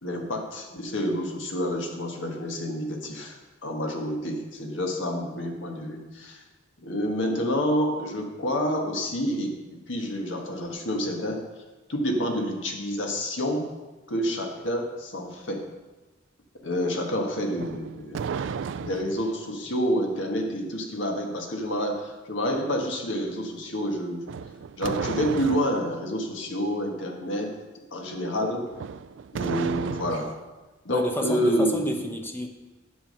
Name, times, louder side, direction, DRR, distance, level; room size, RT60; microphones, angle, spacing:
voice 1, 0.0-6.4 6.8-11.4 11.9-13.7 14.1-15.6 16.6-18.3 18.8-24.2 24.8-27.5 27.9-28.7 29.3-30.3 30.8-32.0, equal, 85° left, 2 dB, 1.7 m, -28 dB
sound 1, 17.5-19.3 24.2-25.8 28.7-30.4, right 6 dB, 85° right, 0.4 m, -33 dB
voice 2, 30.9-32.5, left 1 dB, 10° left, 4 dB, 0.9 m, -29 dB
10.0 x 7.1 x 5.5 m, 1.2 s
head